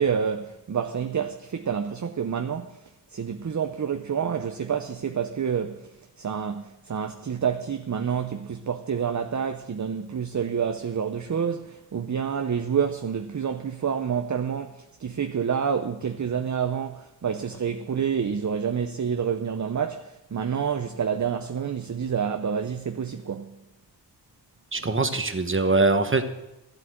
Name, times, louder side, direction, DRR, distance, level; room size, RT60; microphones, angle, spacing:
voice 1, 0.0-5.9 6.2-23.6 24.7-24.8, right 7 dB, 45° right, 0.7 m, -28 dB
voice 2, 24.7-26.2, right 3 dB, 30° right, 1.3 m, -22 dB
12.5 x 8.0 x 7.6 m
cardioid pair, 60°, 40 cm